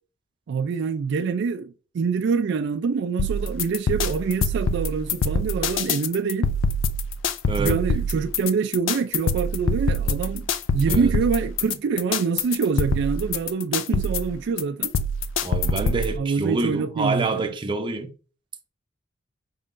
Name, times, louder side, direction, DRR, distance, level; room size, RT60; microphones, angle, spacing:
voice 1, 0.5-6.5 7.6-10.5 10.7-15.0 16.1-17.5, right 5 dB, 65° right, 0.3 m, -25 dB
sound 1, 3.2-16.2, left 2 dB, 70° left, 0.4 m, -25 dB
voice 2, 7.5-7.8 10.9-11.1 15.4-18.1, right 3 dB, 25° right, 0.6 m, -27 dB
5.4 x 3.6 x 2.5 m
head